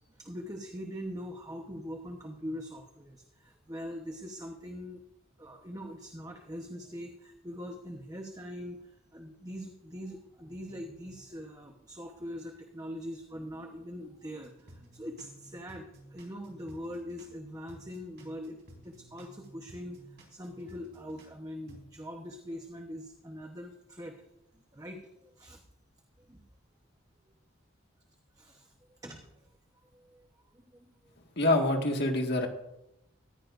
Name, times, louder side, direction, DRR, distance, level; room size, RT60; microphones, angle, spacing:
voice 1, 0.0-5.0 5.4-18.6 18.8-24.2 24.5-25.6 26.2-26.4 27.2-27.3 28.3-29.3 29.8-30.3 30.5-30.9, equal, 15° right, 2 dB, 1.0 m, -43 dB
sound 1, 14.4-17.4 17.7-21.4 21.7-22.0, right 1 dB, 50° right, 4.1 m, -54 dB
voice 2, 31.4-32.5, left 1 dB, 55° left, 2 dB, 1.9 m, -26 dB
18.5 x 15.0 x 2.6 m, 0.87 s
head